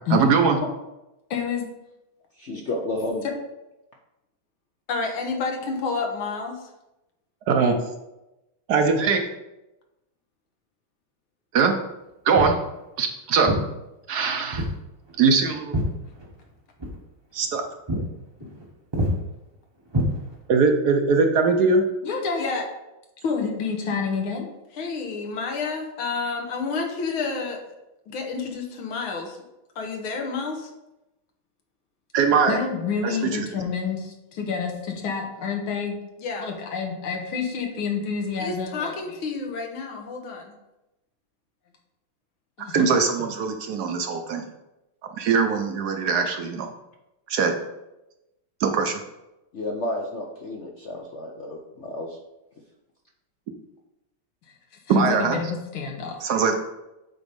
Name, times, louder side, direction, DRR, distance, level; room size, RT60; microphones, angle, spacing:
voice 1, 0.1-0.6 7.5-7.7 8.7-9.2 11.5-11.7 12.2-12.6 13.0-13.5 14.1-14.6 15.2-15.8 17.3-17.6 20.5-21.8 32.1-32.6 33.0-33.5 42.7-44.4 45.2-46.7 47.3-47.5 48.6-49.0 54.9-55.4 56.2-56.5, right 5 dB, 65° right, 5 dB, 1.1 m, -21 dB
voice 2, 1.3-1.7 3.2-3.3 4.9-6.6 18.4-18.5 22.0-22.7 23.2-24.5 24.7-27.7 28.1-29.4 29.8-30.7 32.5-40.5 42.6-42.9 54.9-56.2, left 5 dB, 90° left, 2 dB, 2.0 m, -29 dB
voice 3, 2.4-3.2 49.5-52.2, left 1 dB, 60° left, 0 dB, 0.7 m, -31 dB
Walk footsteps, 12.3-12.6 13.4-13.7 14.5-14.8 15.1-16.5 16.8-17.0 17.4-17.6 17.9-18.1 18.4-18.6 18.9-19.2 19.9-20.6, equal, 20° right, 0.7 m, -26 dB
8.2 x 4.1 x 5.2 m, 0.95 s
omnidirectional pair, 2.2 m